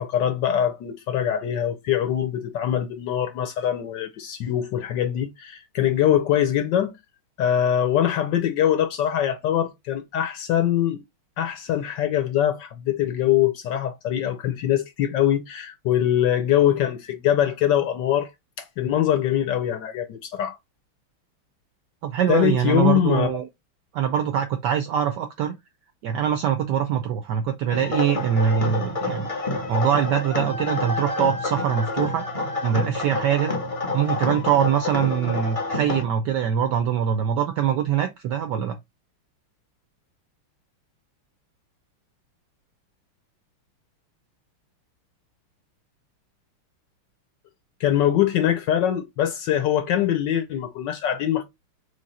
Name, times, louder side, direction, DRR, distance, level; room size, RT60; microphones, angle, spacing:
voice 1, 0.0-6.9 7.4-11.0 11.4-18.3 18.6-20.6 22.3-23.3 47.8-51.4, left 10 dB, 70° left, 1.1 m, -23 dB
voice 2, 22.0-23.5 23.9-25.6 26.0-29.3 29.7-32.3 32.6-33.5 33.9-38.8, right 9 dB, 75° right, 0.9 m, -23 dB
sound 1, 27.7-36.0, left 2 dB, 30° left, 0.6 m, -28 dB
3.9 x 3.2 x 4.0 m
omnidirectional pair, 2.4 m